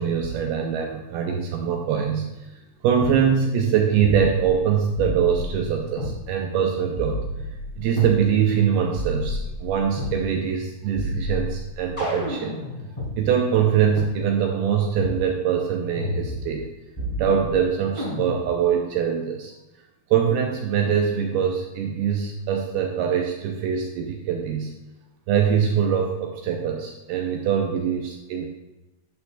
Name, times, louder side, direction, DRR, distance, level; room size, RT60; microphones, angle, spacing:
voice 1, 0.0-2.5 2.8-7.3 7.8-12.6 13.2-16.7 17.2-19.5 20.1-24.7 25.3-28.5, right 8 dB, 80° right, 2 dB, 2.4 m, -23 dB
sound 1, 3.0-3.2 4.0-4.6 5.0-6.2 7.0-8.2 9.0-10.2 11.0-13.1 14.0-14.1 15.0-15.2 16.0-16.7 17.0-17.6 18.0-18.6, left 1 dB, 10° left, 2.2 m, -30 dB
11.0 x 7.9 x 2.4 m, 0.98 s
omnidirectional pair, 4.8 m